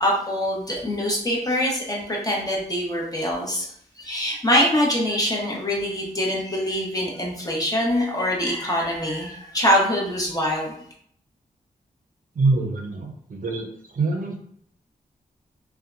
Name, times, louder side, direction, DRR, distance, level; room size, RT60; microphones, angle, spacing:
voice 1, 0.0-3.7 4.0-10.7, equal, 20° left, -2 dB, 0.9 m, -24 dB
voice 2, 12.3-14.4, right 3 dB, 55° right, 2 dB, 0.6 m, -25 dB
2.6 x 2.2 x 2.5 m, 0.65 s
cardioid pair, 55°, 16 cm